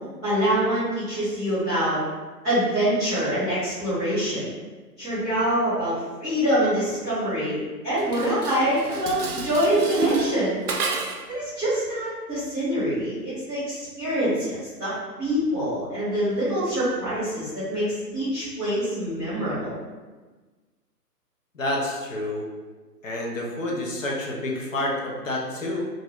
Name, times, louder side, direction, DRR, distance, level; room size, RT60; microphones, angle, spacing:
voice 1, 0.2-2.0 2.4-4.5 5.0-5.9 6.2-10.6 11.3-14.9 15.2-19.8, equal, ahead, -24 dB, 0.6 m, -25 dB
Dishes pots and pans, 8.0-11.4, right 4 dB, 65° right, 0.5 m, -30 dB
voice 2, 21.5-22.5 23.0-25.9, left 1 dB, 55° left, -2 dB, 0.7 m, -28 dB
2.6 x 2.4 x 3.1 m, 1.3 s
figure-of-eight pair, 135°, 49 cm